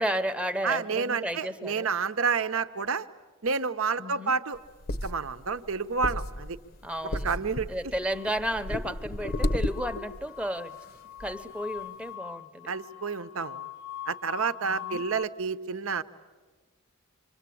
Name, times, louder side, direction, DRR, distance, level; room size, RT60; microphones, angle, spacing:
voice 1, 0.0-1.9 4.0-4.3 6.8-7.3 7.7-10.8 11.2-12.7 14.6-15.0, equal, 5° right, 9 dB, 0.8 m, -33 dB
voice 2, 0.6-3.1 3.4-4.6 5.0-6.6 7.2-7.7 12.7-13.7 14.1-16.0, right 5 dB, 70° right, 11 dB, 0.8 m, -29 dB
marker on whiteboard, 4.6-10.3 10.8-10.9 11.2-11.3, left 1 dB, 45° left, 0.8 m, -33 dB
sound 1, 8.1-15.2, left 12 dB, 70° left, 1.0 m, -43 dB
27.5 x 25.0 x 8.5 m, 1.3 s
head